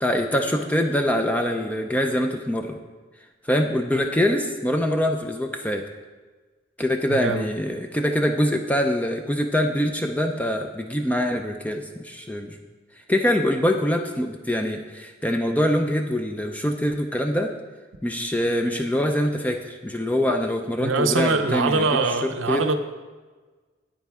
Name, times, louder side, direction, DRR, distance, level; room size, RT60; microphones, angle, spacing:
voice 1, 0.0-2.8 3.4-5.8 6.8-12.6 13.1-17.5 18.0-22.6, equal, 10° left, 4 dB, 0.4 m, -24 dB
voice 2, 7.1-7.5 20.8-22.7, right 3 dB, 90° right, 8 dB, 0.7 m, -23 dB
9.2 x 9.1 x 3.6 m, 1.3 s
head